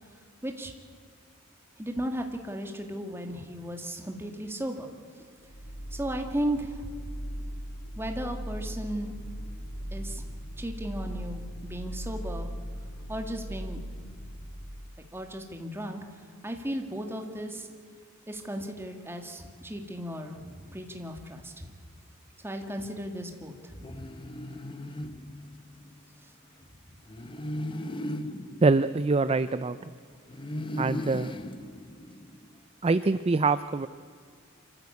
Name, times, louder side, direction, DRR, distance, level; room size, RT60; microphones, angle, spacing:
voice 1, 1.8-4.9 5.2-5.3 5.9-6.9 8.0-10.3 10.6-12.5 13.1-13.8 14.3-14.4 15.1-16.0 16.4-17.7 18.3-21.6 22.4-24.0 25.0-25.1, right 1 dB, 10° right, 3 dB, 2.0 m, -35 dB
sound 1, 5.4-15.0, equal, 85° left, 4.7 m, -38 dB
sound 2, 23.8-25.9 27.1-29.8 30.3-32.5, left 1 dB, 25° left, 0.8 m, -37 dB
voice 2, 28.6-29.8 30.8-31.3 32.8-33.9, right 3 dB, 30° right, 13 dB, 0.4 m, -24 dB
26.5 x 14.5 x 8.4 m, 2.1 s
head